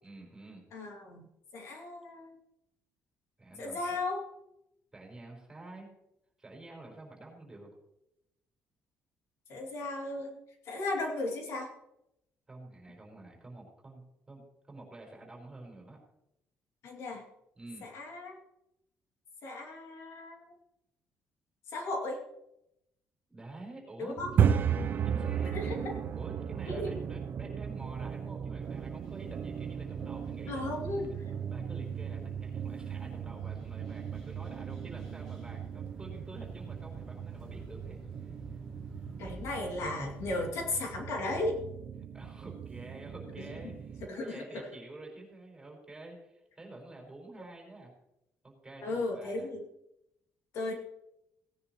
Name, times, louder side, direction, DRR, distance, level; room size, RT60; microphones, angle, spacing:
voice 1, 0.0-0.6 3.4-4.0 4.9-5.9 6.4-7.7 12.5-16.0 17.5-17.9 23.3-24.1 25.0-25.6 26.1-30.6 31.1-31.2 31.5-38.0 42.1-47.9 48.4-49.5, right 2 dB, 10° right, -1 dB, 4.5 m, -49 dB
voice 2, 0.7-1.3 1.5-2.4 3.6-4.2 9.5-10.3 10.7-11.7 16.8-17.2 17.8-18.3 19.4-20.4 21.7-22.2 24.0-24.3 25.5-26.0 26.7-27.0 30.5-31.1 39.2-41.6 43.6-43.8 44.1-44.6 48.8-49.6 50.5-50.7, left 2 dB, 65° left, 1 dB, 2.5 m, -35 dB
sound 1, 24.2-44.1, right 8 dB, 40° right, 0.5 m, -35 dB
sound 2, 28.6-40.4, equal, 5° left, 3.8 m, -52 dB
18.0 x 10.5 x 3.0 m, 0.84 s
cardioid pair, 150°, 5 cm